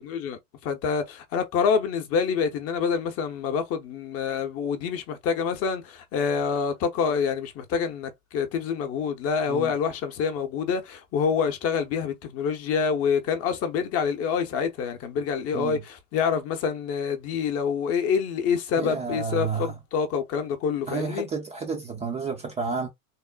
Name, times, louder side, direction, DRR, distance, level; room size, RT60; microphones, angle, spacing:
voice 1, 0.0-21.3, left 6 dB, 35° left, 0.7 m, -27 dB
voice 2, 18.8-19.7 20.9-22.9, right 5 dB, 15° right, 0.4 m, -30 dB
3.6 x 2.1 x 2.2 m
supercardioid pair, 120°, 41 cm